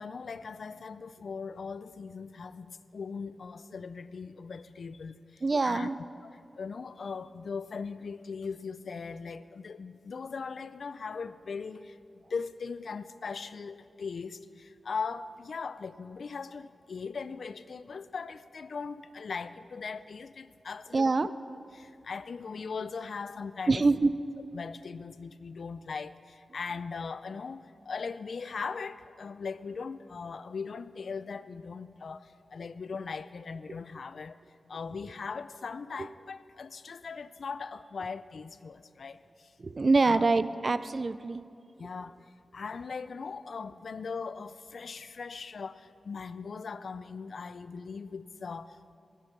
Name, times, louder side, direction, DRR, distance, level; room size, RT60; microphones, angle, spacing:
voice 1, 0.0-5.9 6.2-21.3 21.7-23.9 24.5-34.4 34.7-39.5 40.0-40.3 41.8-42.2 42.5-49.0, left 5 dB, 65° left, 14 dB, 0.4 m, -39 dB
voice 2, 5.4-6.0 20.9-21.3 23.7-24.1 39.6-41.4, right 3 dB, 40° right, 14 dB, 0.3 m, -25 dB
12.5 x 8.3 x 5.8 m, 2.5 s
wide cardioid pair, 120°, 0 cm